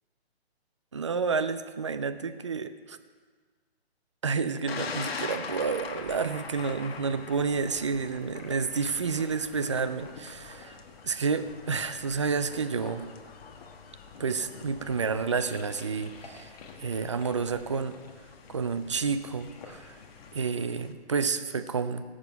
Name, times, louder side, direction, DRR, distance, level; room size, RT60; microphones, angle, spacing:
voice 1, 0.9-3.0 4.2-10.8 11.0-13.1 14.2-18.0 18.5-20.0 20.3-22.0, right 5 dB, 30° right, 12 dB, 0.4 m, -30 dB
Thunder, 4.7-20.9, left 5 dB, 65° left, 1.2 m, -44 dB
sound 1, 5.5-20.4, left 5 dB, 35° left, 1.3 m, -50 dB
17.5 x 7.4 x 4.6 m, 1.5 s
hypercardioid pair, 155°, 32 cm